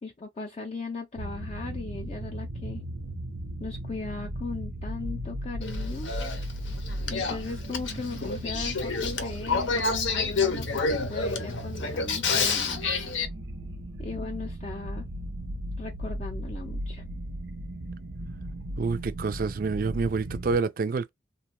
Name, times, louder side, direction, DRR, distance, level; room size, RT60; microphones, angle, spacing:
voice 1, 0.0-2.8 3.6-6.1 7.1-13.3 14.0-15.0 15.8-17.0, left 3 dB, 35° left, 0.4 m, -38 dB
sound 1, 1.2-20.6, right 1 dB, 90° right, 0.7 m, -36 dB
Male speech man speaking / Female speech woman speaking / Conversation, 5.6-13.3, left 4 dB, 80° left, 0.7 m, -29 dB
voice 2, 18.8-21.1, right 4 dB, 50° right, 0.3 m, -27 dB
2.5 x 2.2 x 2.9 m
head